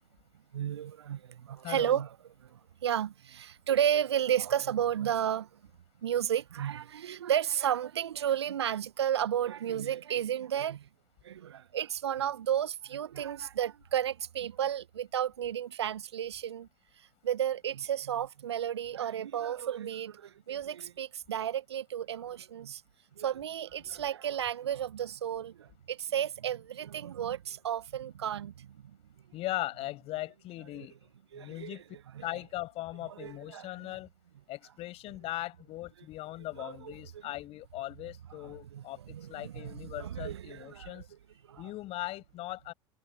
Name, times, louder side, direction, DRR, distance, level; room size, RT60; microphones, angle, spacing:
voice 1, 0.5-2.1 2.4-5.5 6.0-10.9 11.2-16.7 17.2-22.8 23.2-29.0 30.8-30.9 31.3-31.8 32.1-32.2 33.1-33.9 36.6-36.9 38.4-41.0 41.5-41.6, right 10 dB, 75° right, 1.2 m, -33 dB
voice 2, 1.6-2.0 23.8-24.1 29.3-31.0 31.3-31.8 32.2-34.1 34.5-41.0 41.6-42.7, left 16 dB, 45° left, 6.5 m, -39 dB
figure-of-eight pair, 80°, 14 cm